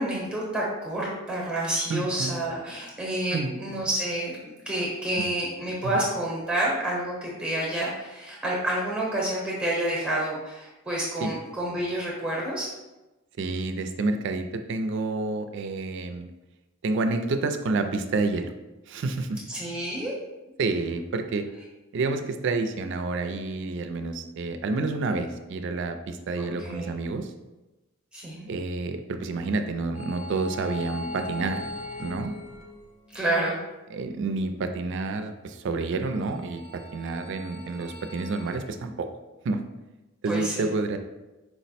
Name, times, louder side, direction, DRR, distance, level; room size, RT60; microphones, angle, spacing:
voice 1, 0.0-4.3 4.7-12.7 19.5-20.1 26.4-26.9 28.1-28.5 33.1-33.6 40.3-40.7, right 1 dB, 5° right, -5 dB, 0.8 m, -29 dB
voice 2, 1.9-2.3 3.3-3.5 5.2-5.3 5.8-6.0 11.2-11.3 13.4-16.3 16.8-18.5 18.9-19.4 20.6-21.5 21.9-27.3 28.5-31.6 32.0-32.3 33.9-39.1 39.4-39.6 40.2-41.0, right 3 dB, 60° right, 7 dB, 0.4 m, -29 dB
sound 1, 29.9-33.2 36.0-38.6, left 1 dB, 35° left, 0.5 m, -40 dB
4.6 x 2.1 x 4.1 m, 1.0 s
head